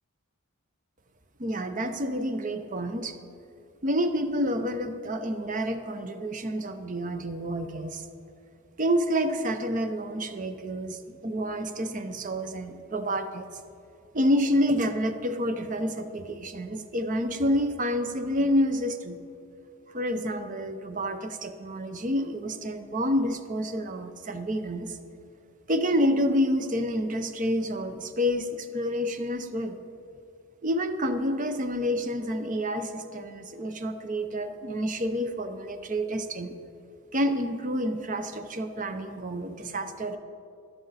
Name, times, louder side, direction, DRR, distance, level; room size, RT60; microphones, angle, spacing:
voice 1, 1.4-3.2 3.8-8.1 8.8-13.5 14.1-19.2 19.9-25.0 25.7-29.8 30.6-36.5 37.1-40.2, equal, 35° right, 8 dB, 0.6 m, -28 dB
12.0 x 11.5 x 4.1 m, 2.4 s
head